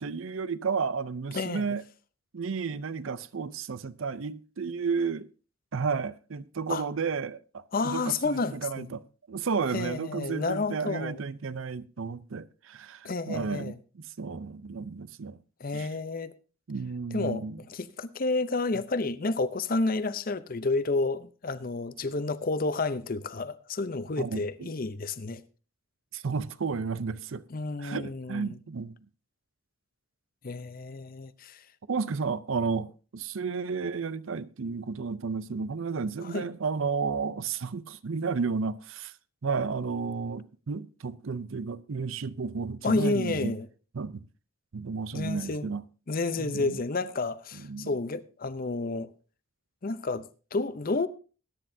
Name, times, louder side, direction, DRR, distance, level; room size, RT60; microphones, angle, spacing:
voice 1, 0.0-1.8 2.3-5.3 5.7-15.4 15.7-15.9 16.7-17.6 24.2-24.7 26.1-27.4 27.8-29.0 31.9-39.1 39.4-43.5 43.9-44.3 44.7-45.8 46.3-46.8 47.5-48.0, right 5 dB, 70° right, 0.5 m, -32 dB
voice 2, 7.7-8.9 9.7-11.2 13.0-13.8 15.6-16.3 17.1-17.4 17.7-25.4 27.5-28.6 30.4-31.6 36.2-36.4 42.8-43.7 45.1-45.7 46.1-49.1 49.8-51.1, left 3 dB, 40° left, 0.6 m, -30 dB
21.0 x 9.9 x 2.7 m
head